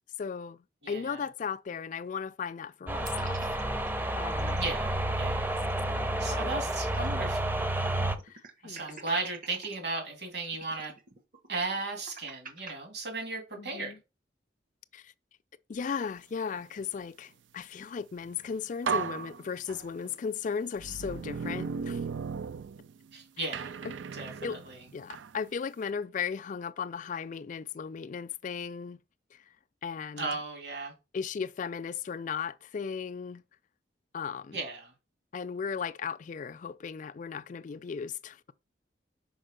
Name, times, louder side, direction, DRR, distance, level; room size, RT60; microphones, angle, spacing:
voice 1, 0.2-0.6 0.9-3.4 3.8-4.6 5.5-5.6 5.9-6.5 8.2-8.8 13.6-14.0 14.9-15.1 15.7-22.0 23.4-23.5 23.8-23.9 24.4-24.6 24.9-29.0 29.3-29.4 29.8-30.3 31.1-33.4 34.1-34.6 35.3-38.5, left 6 dB, 45° left, 0.3 m, -36 dB
voice 2, 0.8-1.2 4.6-5.5 6.2-7.5 8.6-10.9 11.5-14.0 23.1-23.7 24.1-24.8 30.2-30.9 34.5-34.9, right 3 dB, 65° right, 2.7 m, -36 dB
sound 1, 2.9-8.2, right 1 dB, 10° right, 0.6 m, -30 dB
sound 2, 3.1-4.8 5.2-5.3 5.5-7.3 7.6-7.7 8.2-9.8 10.4-12.7, right 5 dB, 50° right, 1.0 m, -49 dB
sound 3, 18.3-18.4 18.8-20.1 20.8-23.1 23.5-25.3, right 5 dB, 90° right, 0.4 m, -36 dB
5.4 x 4.8 x 5.1 m
head